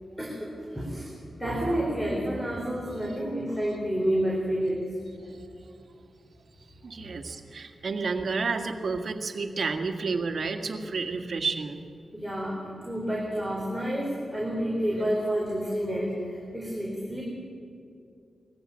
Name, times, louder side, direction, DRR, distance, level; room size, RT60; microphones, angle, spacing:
voice 1, 0.2-1.1 1.4-5.3 12.1-17.2, equal, 5° left, -2 dB, 4.4 m, -29 dB
voice 2, 6.8-11.8, right 4 dB, 60° right, 5 dB, 1.9 m, -30 dB
21.0 x 15.0 x 8.9 m, 2.4 s
cardioid pair, 70°, 0 cm